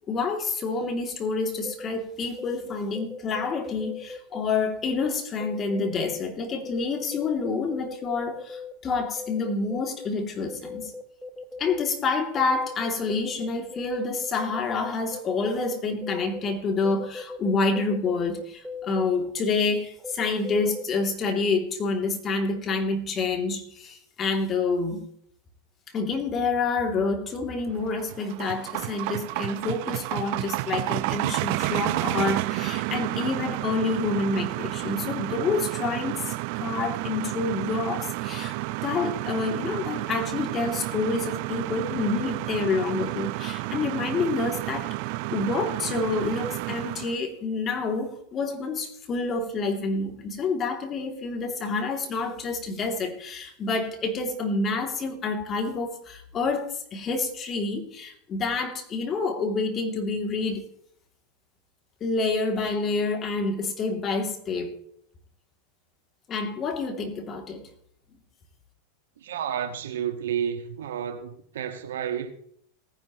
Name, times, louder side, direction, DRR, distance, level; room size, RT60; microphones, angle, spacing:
voice 1, 0.1-10.9 11.6-25.0 25.9-44.9 45.3-60.6 62.0-64.8 66.3-67.6, left 3 dB, 30° left, 2.7 m, -28 dB
sound 1, 1.7-1.9 2.3-4.4 4.9-5.1 5.4-6.2 6.6-10.1 10.5-11.9 12.4-14.0 14.2-16.4 16.8-20.8, left 4 dB, ahead, 1.4 m, -38 dB
sound 2, 27.8-47.2, right 20 dB, 55° right, 0.6 m, -31 dB
voice 2, 69.2-72.3, right 9 dB, 75° right, 1.4 m, -31 dB
18.5 x 10.5 x 3.1 m
hypercardioid pair, 100°, 0 cm